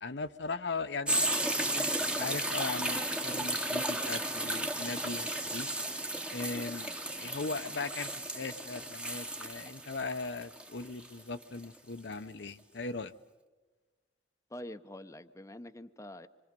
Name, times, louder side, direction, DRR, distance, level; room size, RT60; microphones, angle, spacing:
voice 1, 0.0-5.7 6.3-13.1, left 3 dB, 70° left, 0.8 m, -39 dB
sound 1, 1.1-11.6 12.1-12.2, right 1 dB, 5° right, 1.0 m, -34 dB
voice 2, 14.5-16.3, left 1 dB, 15° left, 0.7 m, -45 dB
26.5 x 25.0 x 5.3 m
head